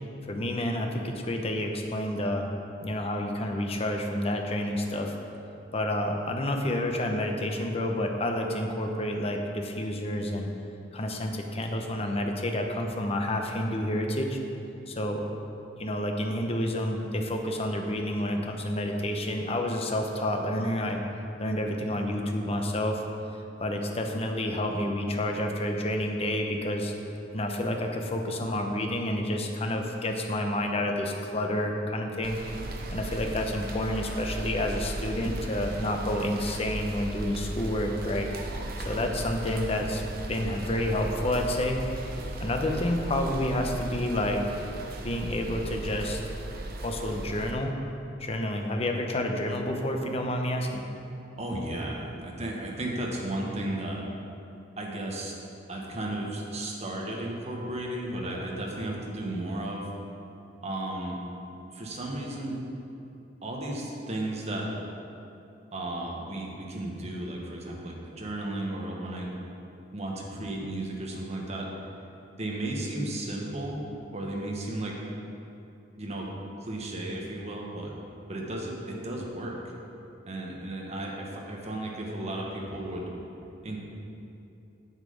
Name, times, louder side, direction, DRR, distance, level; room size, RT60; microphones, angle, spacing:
voice 1, 0.2-2.5 2.8-5.1 5.7-10.5 10.9-14.4 14.9-15.2 15.8-21.0 21.4-23.0 23.6-26.9 27.3-32.4 32.9-38.3 38.8-40.0 40.3-41.8 42.4-44.4 45.0-46.2 46.8-47.7 48.2-50.8, left 1 dB, 35° left, 3 dB, 0.9 m, -29 dB
sound 1, 32.2-47.5, right 2 dB, 55° right, 0.8 m, -36 dB
voice 2, 51.4-54.0 54.8-55.3 55.7-59.9 60.6-61.2 61.7-62.6 63.4-64.7 65.7-69.3 69.9-71.7 72.4-73.8 74.1-75.0 76.0-76.3 76.6-77.9 78.3-79.6 80.3-83.1 83.6-83.8, right 1 dB, 35° right, -1 dB, 1.4 m, -34 dB
8.2 x 7.4 x 5.2 m, 2.7 s
head